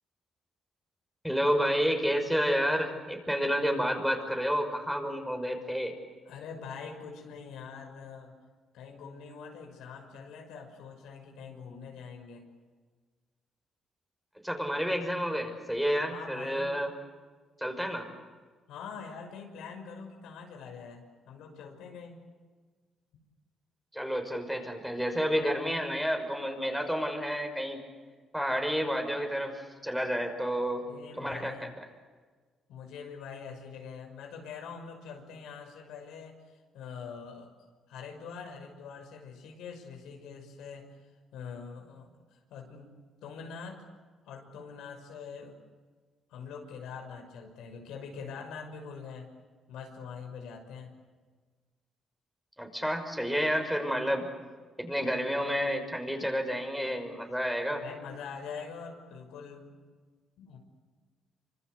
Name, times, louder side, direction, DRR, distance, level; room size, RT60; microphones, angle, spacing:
voice 1, 1.2-5.9 14.4-16.9 17.6-18.1 23.9-27.8 28.3-30.9 31.2-31.9 52.6-54.3 54.8-57.8, equal, ahead, 4 dB, 5.9 m, -30 dB
voice 2, 6.2-8.3 8.7-12.4 16.1-16.8 18.7-22.2 30.9-31.7 32.7-37.5 37.9-41.0 41.3-42.9 43.2-43.9 44.2-45.6 46.3-49.3 49.7-50.9 57.8-59.8 60.4-60.6, left 6 dB, 90° left, 3 dB, 6.1 m, -44 dB
27.0 x 25.5 x 8.1 m, 1.4 s
cardioid pair, 90°, 0 cm